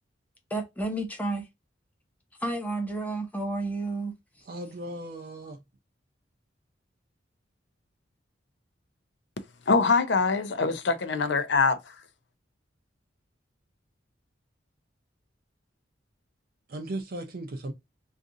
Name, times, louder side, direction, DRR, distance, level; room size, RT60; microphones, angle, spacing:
voice 1, 0.5-1.4 2.4-4.1, right 2 dB, 10° left, 0.8 m, -31 dB
voice 2, 4.5-5.6 16.7-17.7, right 1 dB, 55° right, 0.5 m, -36 dB
voice 3, 9.7-11.9, left 4 dB, 65° left, 0.6 m, -24 dB
2.6 x 2.4 x 3.7 m
head